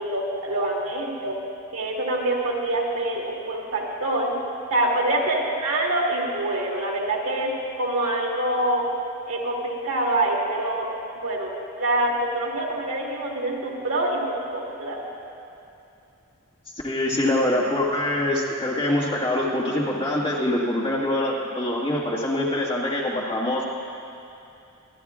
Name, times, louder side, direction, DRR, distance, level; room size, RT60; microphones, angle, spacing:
voice 1, 0.0-1.4 1.7-4.3 4.7-7.5 7.8-8.9 9.3-15.0, right 1 dB, 80° right, -2 dB, 1.8 m, -25 dB
voice 2, 16.8-23.7, left 1 dB, 25° left, -5 dB, 1.9 m, -24 dB
25.0 x 11.5 x 2.5 m, 2.7 s
head